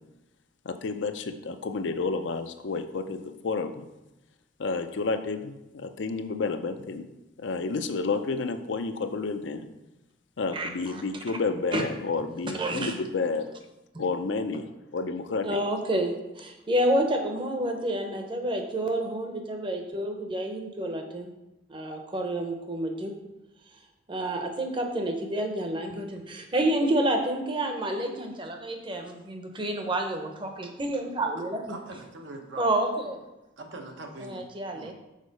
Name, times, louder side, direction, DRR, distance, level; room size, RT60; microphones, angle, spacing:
voice 1, 0.6-3.9 4.6-7.1 7.4-9.7 10.4-13.5 14.0-15.6, left 4 dB, 70° left, 9 dB, 0.5 m, -30 dB
voice 2, 10.5-11.0 11.7-11.9 12.6-12.9 15.4-21.3 21.7-23.1 24.1-31.8 32.6-33.2 34.2-34.9, right 1 dB, 25° right, 4 dB, 0.8 m, -29 dB
voice 3, 31.7-32.6 33.6-34.4 34.7-34.9, right 2 dB, 70° right, 3 dB, 1.0 m, -42 dB
6.5 x 4.3 x 5.2 m, 0.96 s
head